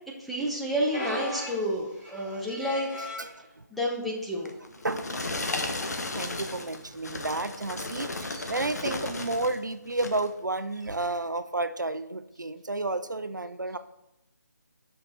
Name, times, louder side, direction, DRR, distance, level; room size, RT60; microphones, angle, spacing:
voice 1, 0.2-2.9 3.7-4.5, equal, ahead, -4 dB, 0.8 m, -30 dB
sound 1, 0.9-3.4 4.1-4.4 4.7-4.8 5.7-6.0 7.6-7.7, left 1 dB, 30° left, 2.3 m, -38 dB
voice 2, 3.2-3.6 4.8-5.2 6.1-13.8, right 2 dB, 80° right, 11 dB, 0.6 m, -31 dB
sound 2, 4.5-9.6 9.9-10.3 10.9-11.0, left 2 dB, 60° left, 1.1 m, -34 dB
7.5 x 5.8 x 4.2 m, 0.89 s
figure-of-eight pair, 150°, 10 cm